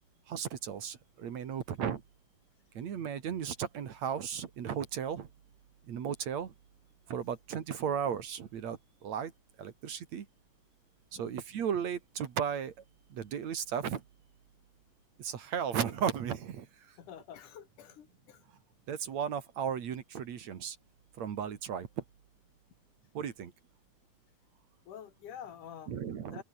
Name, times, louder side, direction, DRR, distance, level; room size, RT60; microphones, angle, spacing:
voice 1, 0.3-2.0 2.7-5.3 5.9-6.5 7.1-9.3 9.6-10.3 11.1-12.7 13.1-14.0 15.2-16.7 18.9-20.8 21.2-22.0 23.1-23.5 25.9-26.4, right 8 dB, 60° right, 3.0 m, -35 dB
voice 2, 17.0-18.4 24.9-26.0 26.3-26.4, left 9 dB, 70° left, 3.4 m, -48 dB
omnidirectional pair, 3.8 m